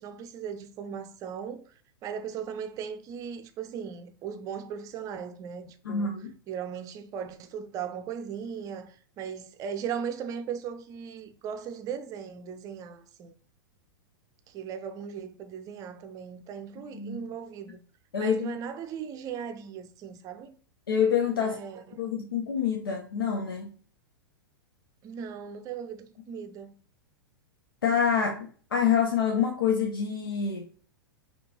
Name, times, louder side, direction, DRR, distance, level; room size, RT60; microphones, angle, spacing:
voice 1, 0.0-1.6 2.0-6.1 6.5-13.3 14.5-17.8 18.2-20.6 21.3-22.1 25.0-26.7, right 7 dB, 30° right, 0.5 m, -38 dB
voice 2, 5.9-6.3 16.9-17.2 18.1-18.5 20.9-21.6 21.9-23.7 27.8-30.7, left 7 dB, 70° left, 0.7 m, -27 dB
5.1 x 2.9 x 2.8 m
figure-of-eight pair, 100°, 12 cm